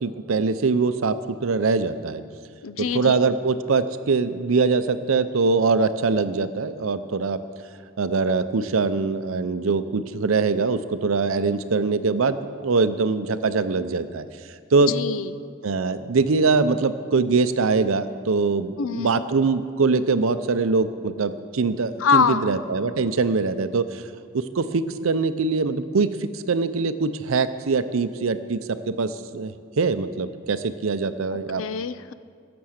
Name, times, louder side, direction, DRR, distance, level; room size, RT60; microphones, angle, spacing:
voice 1, 0.0-2.2 2.9-7.4 8.0-14.2 14.7-14.9 15.6-24.0 24.3-31.6, right 4 dB, 70° right, 12 dB, 0.6 m, -23 dB
voice 2, 2.6-3.2 14.9-15.3 18.8-19.2 22.0-22.5 31.3-32.1, left 6 dB, 70° left, 15 dB, 0.5 m, -24 dB
16.0 x 6.9 x 6.4 m, 2.2 s
head